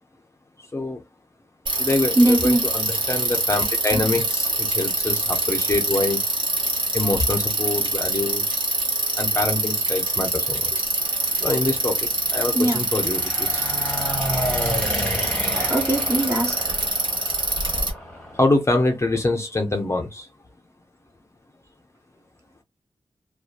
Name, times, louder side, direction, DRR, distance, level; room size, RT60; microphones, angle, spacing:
voice 1, 0.7-1.0 1.8-6.2 6.9-8.6 9.2-10.8 11.4-13.7 18.3-20.3, left 2 dB, 30° left, 0.5 m, -25 dB
Bicycle, 1.7-17.9, right 2 dB, 55° right, 1.0 m, -25 dB
voice 2, 2.1-2.6 12.5-12.8 15.5-16.7, right 1 dB, 30° right, 1.0 m, -20 dB
sound 1, 11.0-18.5, equal, 10° left, 0.9 m, -31 dB
2.5 x 2.3 x 2.3 m
wide cardioid pair, 105°, 10 cm